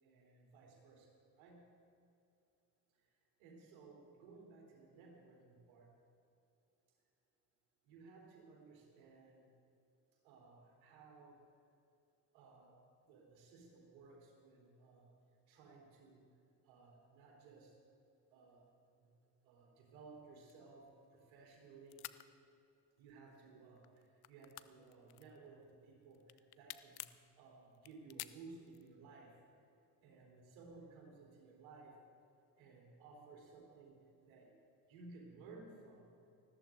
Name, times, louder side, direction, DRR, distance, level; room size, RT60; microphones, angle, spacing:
voice 1, 0.0-1.7 3.4-5.9 7.8-9.5 10.2-11.4 12.3-12.8 13.1-15.0 15.5-16.2 16.6-17.7 18.3-18.6 19.0-19.1 19.4-22.0 23.0-27.0 27.4-29.3 30.0-32.0 32.6-34.5 34.9-36.1, right 3 dB, 65° right, -3 dB, 3.7 m, -58 dB
sound 1, 20.4-21.6 21.9-22.2 23.0-23.5 23.8-25.7 26.1-27.2 27.8-28.9, left 17 dB, 50° left, 0.7 m, -50 dB
20.0 x 14.0 x 3.8 m, 2.6 s
figure-of-eight pair, 50°, 50 cm